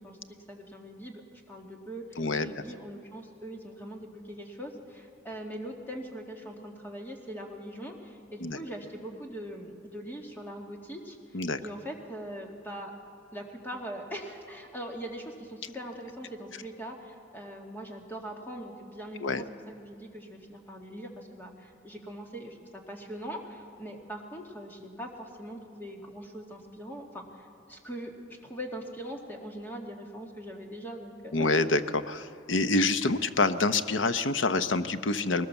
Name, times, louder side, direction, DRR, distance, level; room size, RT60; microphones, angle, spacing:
voice 1, 0.0-12.9 13.3-31.5, equal, 10° left, 1 dB, 2.1 m, -42 dB
voice 2, 2.2-2.5 8.4-8.6 11.3-11.6 19.2-19.4 31.3-35.5, left 3 dB, 80° left, 11 dB, 0.8 m, -27 dB
20.5 x 19.0 x 7.1 m, 2.4 s
head